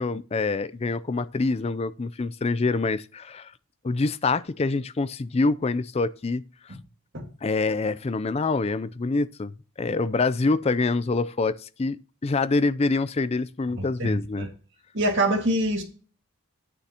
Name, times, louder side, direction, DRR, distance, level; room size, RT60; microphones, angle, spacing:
voice 1, 0.0-3.5 3.8-6.4 7.4-9.5 9.8-14.5, left 3 dB, 30° left, 0.4 m, -26 dB
voice 2, 13.8-14.5 14.9-15.8, right 1 dB, 55° right, 1.9 m, -25 dB
9.9 x 8.6 x 2.9 m
head